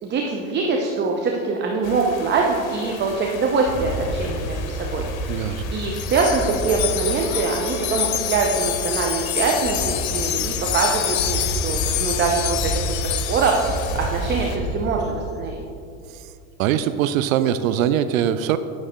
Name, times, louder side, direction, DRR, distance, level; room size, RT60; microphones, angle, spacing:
voice 1, 0.0-15.6, right 4 dB, 25° right, 0 dB, 0.7 m, -24 dB
sound 1, 1.8-14.6, left 6 dB, 70° left, 1.0 m, -39 dB
sound 2, 3.7-15.0, right 1 dB, 5° right, 1.8 m, -30 dB
voice 2, 5.3-5.6 16.1-16.3 16.6-18.6, right 10 dB, 75° right, 12 dB, 0.5 m, -22 dB
Wind chime, 5.9-14.1, left 12 dB, 85° left, 0.6 m, -27 dB
9.3 x 6.2 x 3.6 m, 2.6 s
hypercardioid pair, 105°, 41 cm